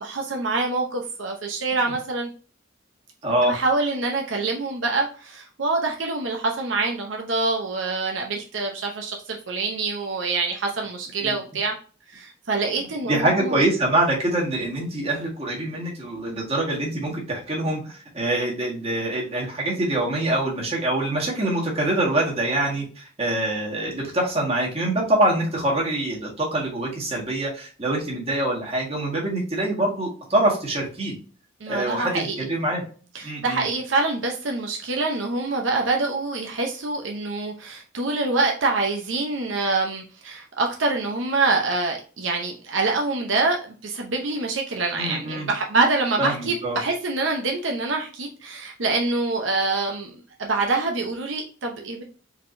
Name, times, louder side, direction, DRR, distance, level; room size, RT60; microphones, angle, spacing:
voice 1, 0.0-2.3 3.5-11.7 12.1-13.5 31.6-32.4 33.1-52.0, right 3 dB, 75° right, 1 dB, 0.7 m, -25 dB
voice 2, 3.2-3.5 11.2-11.4 12.8-31.1 31.7-32.1 32.4-32.8 33.2-33.6 45.0-45.5 46.2-46.8, right 1 dB, 30° right, -3 dB, 1.7 m, -25 dB
4.7 x 3.7 x 2.6 m, 0.39 s
head